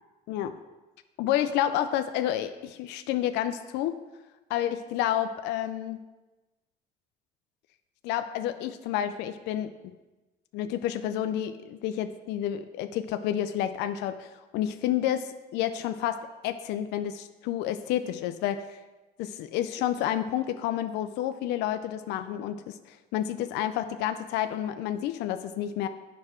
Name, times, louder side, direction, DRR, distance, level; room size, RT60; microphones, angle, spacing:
voice 1, 0.3-0.6 1.2-4.0 4.5-6.0 8.0-9.7 10.5-18.7 19.2-25.9, left 11 dB, 90° left, 9 dB, 0.4 m, -30 dB
7.8 x 6.0 x 4.3 m, 1.1 s
cardioid pair, 110°, 17 cm